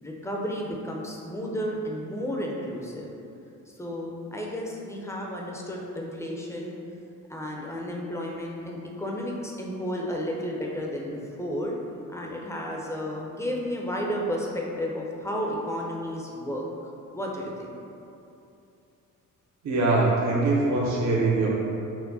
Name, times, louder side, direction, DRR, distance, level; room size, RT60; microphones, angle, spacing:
voice 1, 0.0-3.1 3.8-6.8 7.3-11.8 12.1-16.6 17.1-17.7, equal, 10° left, -2 dB, 0.6 m, -32 dB
voice 2, 19.6-21.5, right 2 dB, 50° right, -5 dB, 0.8 m, -23 dB
4.5 x 2.1 x 4.0 m, 2.8 s
cardioid pair, 75°, 34 cm